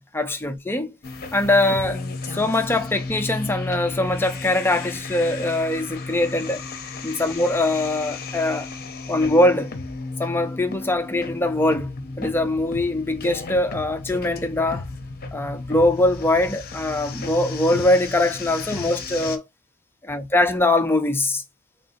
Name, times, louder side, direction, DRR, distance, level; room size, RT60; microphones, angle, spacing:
voice 1, 0.1-0.9 1.3-2.0 2.3-6.6 7.0-8.7 9.1-9.7 10.2-14.8 15.3-19.4 20.0-21.4, left 1 dB, 10° left, 0.5 m, -22 dB
sound 1, 1.0-19.4, left 3 dB, 45° left, 0.7 m, -34 dB
3.6 x 2.7 x 4.0 m
head